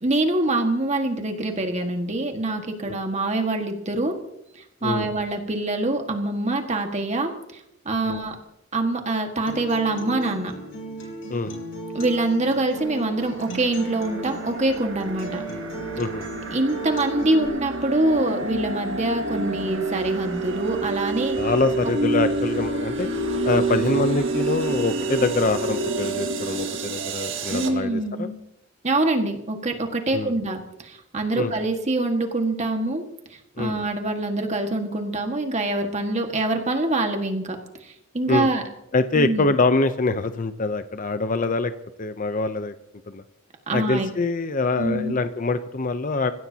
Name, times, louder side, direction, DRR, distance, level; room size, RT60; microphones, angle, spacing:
voice 1, 0.0-4.1 4.5-8.3 8.7-10.5 11.9-15.4 16.5-21.4 27.5-28.3 28.8-37.6 37.8-38.6 39.1-39.5 43.7-44.1 44.8-45.2, right 2 dB, 35° right, 4 dB, 1.7 m, -25 dB
Acoustic guitar, 9.5-17.5, right 3 dB, 80° left, 4.5 m, -36 dB
sound 1, 12.8-27.7, right 3 dB, 75° right, 1.8 m, -28 dB
voice 2, 21.4-23.1 23.4-28.3 30.1-30.3 31.4-31.5 33.6-33.7 38.3-38.5 38.9-41.7 42.0-42.7 43.1-43.2 43.7-46.3, left 3 dB, 45° left, 10 dB, 0.7 m, -24 dB
27.5 x 15.5 x 2.9 m, 0.83 s
head